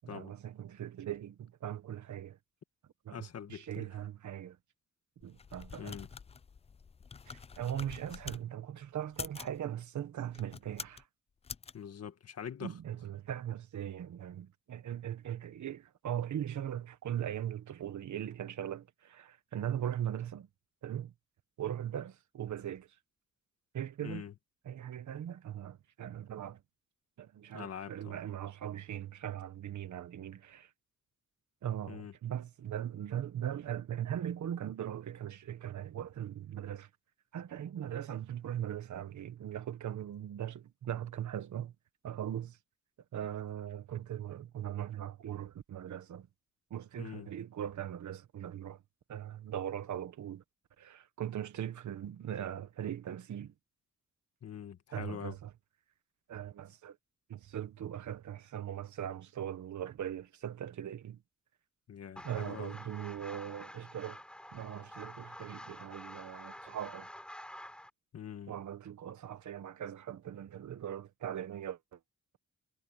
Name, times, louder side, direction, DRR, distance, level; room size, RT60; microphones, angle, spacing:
voice 1, 0.0-2.4 3.0-4.6 5.2-6.0 7.3-11.1 12.6-20.5 20.8-21.1 21.6-22.9 23.7-24.2 24.6-26.6 27.2-30.7 31.6-36.9 37.3-41.7 42.0-42.6 43.1-46.3 46.7-48.8 49.1-50.4 50.8-53.5 54.9-55.5 56.3-57.0 57.3-61.2 62.2-64.2 64.5-67.1 68.5-72.0, right 10 dB, 85° right, 1.4 m, -40 dB
voice 2, 3.1-3.9 5.8-6.1 11.7-12.8 24.0-24.3 27.5-28.2 31.9-32.1 47.0-47.3 54.4-55.4 61.9-62.7 68.1-68.5, left 8 dB, 60° left, 1.8 m, -44 dB
sound 1, 5.2-8.4 9.0-9.6 10.3-11.0 11.4-11.7, left 5 dB, 20° left, 0.3 m, -46 dB
sound 2, 62.2-67.9, equal, 5° left, 4.3 m, -49 dB
wide cardioid pair, 160°, 29 cm